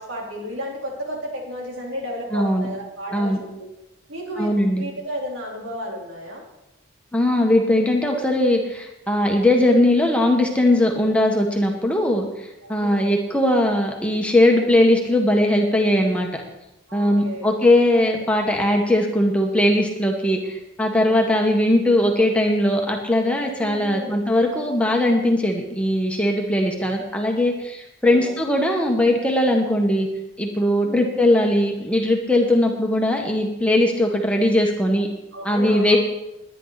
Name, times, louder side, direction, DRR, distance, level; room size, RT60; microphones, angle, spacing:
voice 1, 0.0-3.7 4.1-4.5 4.8-6.4 12.6-13.1 16.9-17.5 23.6-24.2 28.0-28.3 30.8-31.0 35.3-36.0, equal, 80° right, -1 dB, 3.9 m, -33 dB
voice 2, 2.3-2.7 3.1-3.4 4.4-4.8 7.1-16.4 16.9-30.1 30.4-35.1 35.4-36.0, left 1 dB, 5° left, 1 dB, 1.5 m, -19 dB
20.5 x 10.0 x 4.2 m, 0.93 s
head